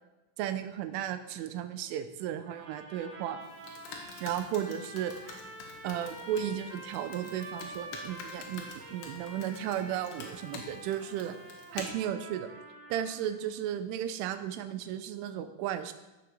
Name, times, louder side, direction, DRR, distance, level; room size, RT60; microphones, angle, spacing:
voice 1, 0.4-3.4 4.2-5.1 5.8-11.4 11.7-12.5 12.9-15.9, right 10 dB, 80° right, 10 dB, 3.3 m, -34 dB
sound 1, 2.4-13.4, right 2 dB, 50° right, 2.6 m, -47 dB
Computer keyboard, 3.4-11.8, left 6 dB, 80° left, 4.2 m, -48 dB
17.5 x 6.6 x 6.6 m, 1.0 s
omnidirectional pair, 5.8 m